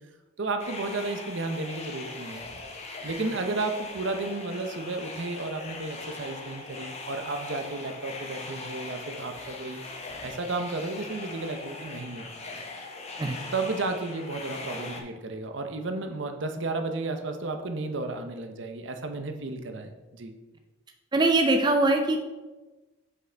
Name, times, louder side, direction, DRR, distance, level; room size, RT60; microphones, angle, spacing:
voice 1, 0.4-2.5 3.0-9.8 10.2-12.3 13.5-20.3, right 3 dB, 65° right, 6 dB, 0.7 m, -33 dB
sound 1, 0.6-15.0, left 3 dB, 35° left, 0.8 m, -40 dB
voice 2, 21.1-22.2, right 2 dB, 20° right, 4 dB, 0.4 m, -22 dB
7.3 x 5.4 x 3.4 m, 1.2 s
head